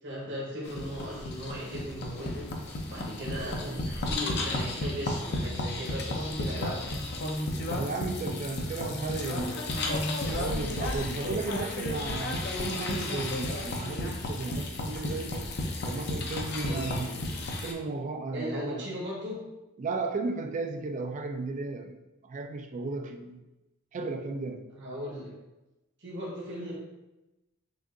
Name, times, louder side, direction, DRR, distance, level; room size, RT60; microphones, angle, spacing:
voice 1, 0.0-2.5 2.8-7.0 16.5-17.2 18.3-19.4 24.7-25.3 26.0-26.7, equal, 55° right, -4 dB, 1.1 m, -37 dB
sound 1, 0.6-17.7, left 2 dB, 50° left, 0.6 m, -33 dB
voice 2, 3.2-4.0 7.7-9.8 10.3-15.6 15.8-17.2 17.6-18.9 19.8-22.0 22.2-23.4 23.9-24.7, right 3 dB, 35° right, 6 dB, 0.3 m, -35 dB
6.0 x 2.4 x 2.5 m, 1.0 s
head